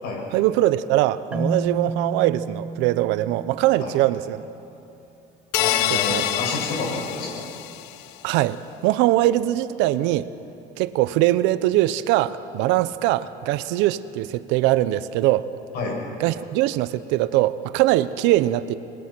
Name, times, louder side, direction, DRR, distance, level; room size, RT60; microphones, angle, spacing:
voice 1, 0.3-4.4 5.9-6.3 8.2-10.3 10.8-15.5 16.2-18.7, right 15 dB, 80° right, 14 dB, 0.8 m, -22 dB
Marimba xylophone, 1.3-4.3, right 2 dB, 5° right, 0.6 m, -31 dB
sound 1, 5.5-8.0, left 13 dB, 75° left, 0.8 m, -26 dB
voice 2, 5.5-7.5 15.7-16.0, left 3 dB, 55° left, -1 dB, 7.6 m, -29 dB
26.5 x 22.0 x 6.1 m, 2.9 s
cardioid pair, 165°, 19 cm